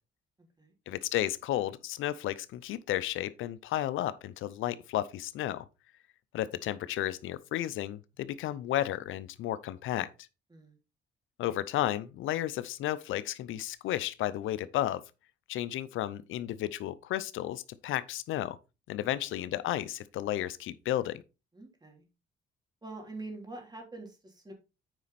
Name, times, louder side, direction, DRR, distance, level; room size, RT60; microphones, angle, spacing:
voice 1, 0.9-5.6 6.3-10.1 11.4-15.0 15.5-18.6 18.9-21.2, left 13 dB, 85° left, 0.6 m, -33 dB
voice 2, 21.5-22.0 22.8-24.5, right 2 dB, 20° right, 3.3 m, -45 dB
9.1 x 5.2 x 4.1 m
cardioid pair, 90°, 20 cm